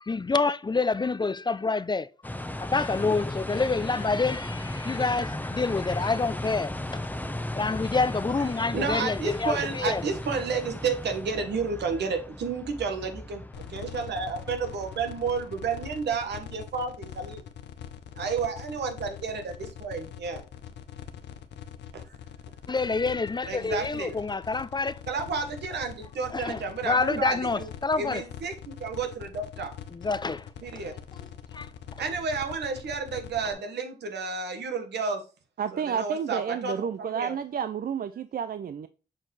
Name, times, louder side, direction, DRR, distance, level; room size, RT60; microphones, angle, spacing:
voice 1, 0.1-2.1 2.6-7.1 7.5-10.0 22.7-25.0 26.3-28.2 29.9-30.5 30.8-31.0 31.5-31.7, left 4 dB, 25° left, 0.5 m, -27 dB
sound 1, 2.2-16.0, left 1 dB, 10° left, 0.9 m, -36 dB
voice 2, 8.7-13.4 13.7-17.4 18.1-20.4 21.9-22.0 23.4-24.2 25.1-27.7 28.0-29.7 30.6-30.9 32.0-35.2 35.7-37.3, right 5 dB, 85° right, 1.5 m, -31 dB
sound 2, 13.5-33.5, left 10 dB, 90° left, 0.8 m, -43 dB
voice 3, 35.6-38.9, right 7 dB, 60° right, 0.5 m, -31 dB
7.5 x 4.5 x 3.2 m
cardioid pair, 60°, 17 cm